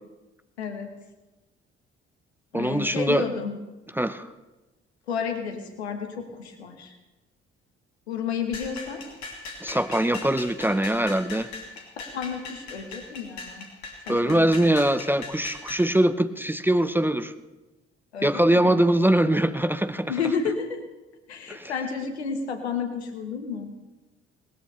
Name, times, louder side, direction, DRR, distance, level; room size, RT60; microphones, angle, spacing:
voice 1, 0.6-0.9 2.5-3.6 5.1-6.9 8.1-9.0 12.0-13.7 14.1-14.6 18.1-18.8 20.1-20.8 21.3-23.7, left 6 dB, 80° left, 5 dB, 1.3 m, -31 dB
voice 2, 2.5-3.3 4.0-4.3 9.6-11.5 14.1-17.3 18.2-20.1 21.5-21.7, right 1 dB, 5° right, 12 dB, 0.6 m, -22 dB
sound 1, 8.5-15.9, left 3 dB, 60° left, 2.2 m, -40 dB
19.0 x 13.5 x 3.3 m, 1.1 s
figure-of-eight pair, 45°, 32 cm